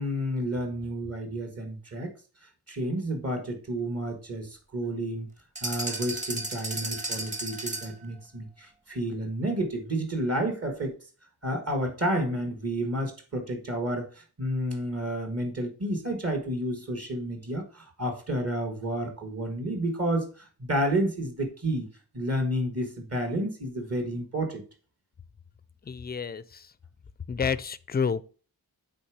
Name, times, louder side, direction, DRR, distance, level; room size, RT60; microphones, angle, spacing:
voice 1, 0.0-2.1 2.7-5.3 5.6-10.9 11.4-21.9 22.1-24.6, right 1 dB, 40° right, 1.5 m, -30 dB
sound 1, 5.6-8.0, right 2 dB, 20° right, 1.1 m, -34 dB
voice 2, 25.8-26.7 27.3-28.2, left 6 dB, 25° left, 0.4 m, -29 dB
8.6 x 3.5 x 4.7 m
wide cardioid pair, 130°, 38 cm